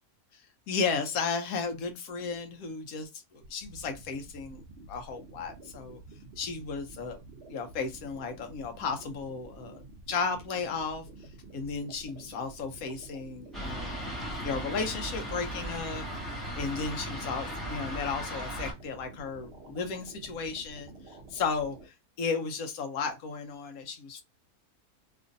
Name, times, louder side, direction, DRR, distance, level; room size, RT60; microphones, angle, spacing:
voice 1, 0.3-4.6 4.9-6.0 6.4-7.2 7.5-11.1 11.5-14.0 14.4-16.0 16.5-24.2, left 5 dB, 75° left, 1.0 m, -34 dB
sound 1, 3.4-21.9, right 2 dB, 60° right, 0.7 m, -50 dB
Fixed-wing aircraft airplane, 13.5-18.7, equal, ahead, 1.1 m, -37 dB
2.9 x 2.5 x 2.5 m
omnidirectional pair, 1.6 m